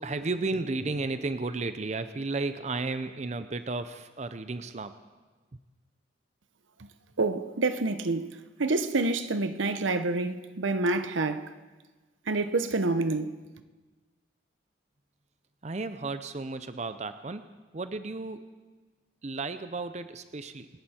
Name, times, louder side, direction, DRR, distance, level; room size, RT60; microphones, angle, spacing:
voice 1, 0.0-5.0 15.6-18.4 19.2-20.7, right 3 dB, 35° right, 0.6 m, -33 dB
voice 2, 7.2-8.3 8.6-11.5 12.3-13.4, right 3 dB, 90° right, 0.9 m, -27 dB
26.0 x 11.5 x 4.4 m
head